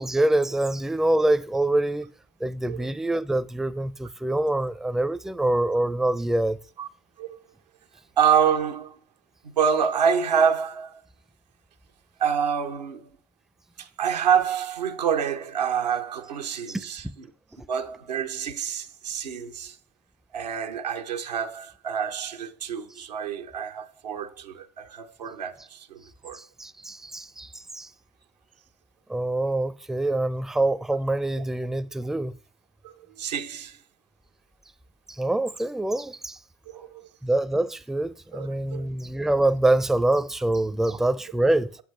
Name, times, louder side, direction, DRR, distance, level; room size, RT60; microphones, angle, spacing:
voice 1, 0.0-2.1 2.4-6.6 16.7-16.8 26.3-27.9 29.1-32.3 35.1-36.4 37.2-41.8, right 1 dB, ahead, 0.4 m, -25 dB
voice 2, 8.2-9.0 9.6-11.0 12.2-13.1 13.8-17.0 17.7-19.8 20.3-26.4 32.8-33.8 36.7-37.0 38.3-38.8 40.9-41.0, right 7 dB, 90° right, 0.8 m, -27 dB
8.3 x 7.6 x 3.2 m
hypercardioid pair, 65°, 21 cm